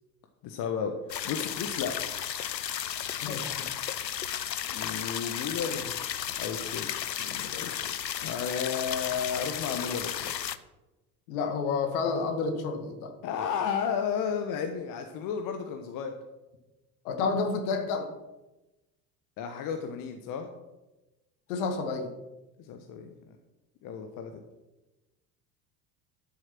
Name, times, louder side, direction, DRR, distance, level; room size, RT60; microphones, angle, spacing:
voice 1, 0.4-0.9 1.2-1.9 4.7-6.9 7.2-7.9 8.2-10.4 13.2-16.1 19.4-20.5 22.7-23.1 23.8-24.4, left 7 dB, 40° left, 5 dB, 1.2 m, -33 dB
sound 1, 1.1-10.6, left 10 dB, 85° left, 0.6 m, -34 dB
voice 2, 3.2-3.7 11.3-13.1 17.0-18.1 21.5-22.1, left 4 dB, 60° left, 6 dB, 2.0 m, -30 dB
11.5 x 7.8 x 6.1 m, 1.0 s
figure-of-eight pair, 70°, 49 cm